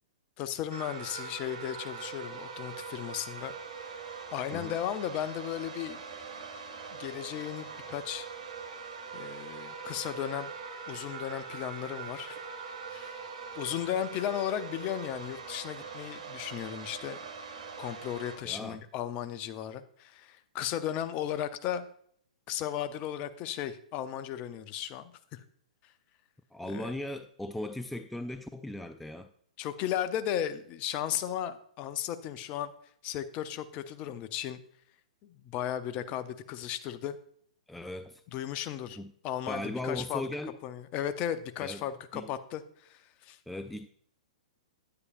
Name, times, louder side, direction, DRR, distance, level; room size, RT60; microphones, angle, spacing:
voice 1, 0.4-3.5 3.8-4.0 4.3-6.0 6.9-8.3 9.1-10.5 10.9-12.4 12.9-13.2 13.5-17.2 17.8-21.9 22.5-25.4 26.7-26.9 29.6-32.7 33.0-34.6 35.2-37.2 38.3-39.0 39.2-40.2 40.6-43.4, left 10 dB, 30° left, 11 dB, 0.7 m, -35 dB
sound 1, 0.7-18.4, right 5 dB, 60° right, 2.1 m, -42 dB
voice 2, 18.4-18.8 26.5-29.3 37.7-38.2 39.0-39.1 39.5-40.6 41.6-41.9 42.1-42.3 43.5-43.9, left 1 dB, 5° left, 9 dB, 0.3 m, -38 dB
9.7 x 9.6 x 2.5 m, 0.63 s
figure-of-eight pair, 115°, 4 cm